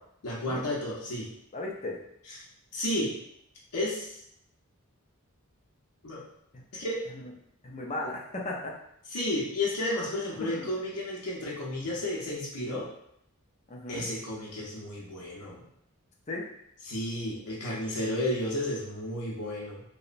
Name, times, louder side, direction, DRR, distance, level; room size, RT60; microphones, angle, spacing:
voice 1, 0.2-1.3 2.3-2.4 2.7-3.2 3.7-4.2 6.0-6.2 6.7-7.0 9.1-12.9 13.9-15.6 16.8-19.8, left 1 dB, 85° left, -4 dB, 0.6 m, -32 dB
voice 2, 1.5-2.0 6.5-6.6 7.1-7.2 7.6-8.7 10.5-10.7 13.7-14.0 16.3-16.4, left 2 dB, 30° left, -1 dB, 0.4 m, -36 dB
2.9 x 2.0 x 2.5 m, 0.73 s
head